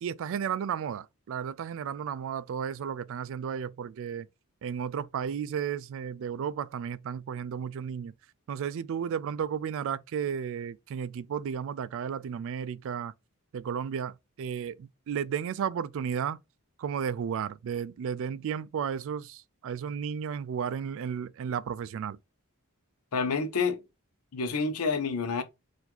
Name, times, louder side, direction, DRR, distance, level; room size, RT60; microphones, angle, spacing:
voice 1, 0.0-4.3 4.6-8.1 8.5-13.1 13.5-16.4 16.8-22.2, right 7 dB, 60° right, 0.3 m, -33 dB
voice 2, 23.1-23.8 24.3-25.4, left 4 dB, 80° left, 0.8 m, -28 dB
4.7 x 2.6 x 3.8 m
head